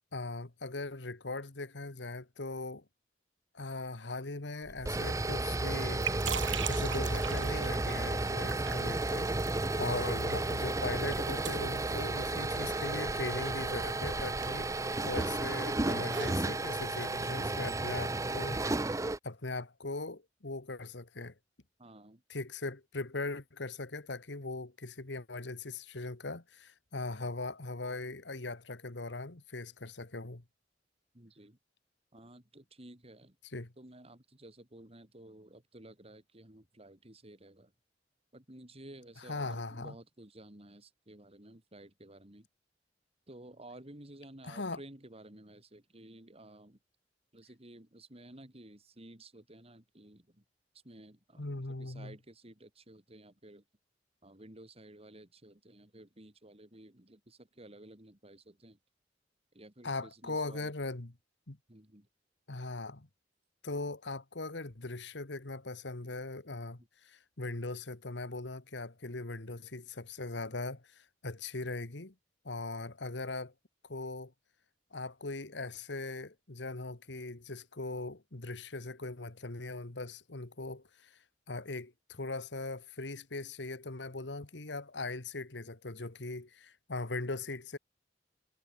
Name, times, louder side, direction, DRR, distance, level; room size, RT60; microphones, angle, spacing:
voice 1, 0.1-2.8 3.5-6.1 6.7-21.3 22.3-30.4 33.5-33.7 39.3-39.9 44.4-44.8 51.4-52.2 59.8-61.1 61.5-61.6 62.5-63.1 63.6-72.1 72.4-73.5 73.8-74.3 74.9-81.2 81.5-87.8, left 2 dB, 70° left, 1.7 m, -40 dB
sound 1, 4.7-19.2, right 2 dB, 20° right, 0.7 m, -33 dB
sound 2, 5.8-17.2, right 9 dB, 85° right, 1.6 m, -44 dB
voice 2, 21.8-22.2 31.1-31.6 32.1-33.4 33.8-37.7 38.3-42.5 43.3-46.8 47.3-50.4 50.8-53.6 54.2-58.8 59.5-60.7 61.7-62.1 66.8-66.9, right 1 dB, 35° right, 3.5 m, -53 dB
head